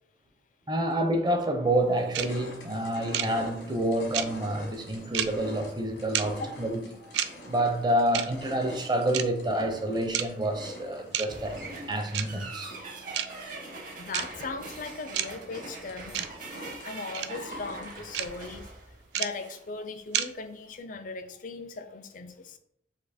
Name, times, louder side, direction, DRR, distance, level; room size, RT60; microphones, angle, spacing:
voice 1, 0.7-6.8 7.5-11.6 11.9-12.7, right 1 dB, 25° right, 0.5 m, -28 dB
sound 1, 0.9-1.0 1.5-18.3, equal, 85° left, 1.3 m, -45 dB
sound 2, 2.1-2.3 3.1-3.3 4.1-4.3 5.1-5.3 6.1-6.3 7.1-7.3 8.1-8.3 9.1-9.2 10.1-10.3 11.1-11.3 12.1-12.3 13.1-13.3 14.1-14.3 15.1-15.3 16.1-16.3 17.1-17.3 18.1-18.3 19.1-19.3 20.1-20.3, right 10 dB, 75° right, 0.3 m, -28 dB
sound 3, 11.3-19.6, right 3 dB, 50° right, 0.9 m, -43 dB
voice 2, 14.0-16.3 16.8-18.7 19.1-22.6, left 3 dB, 50° left, 0.4 m, -38 dB
4.2 x 2.7 x 4.2 m
head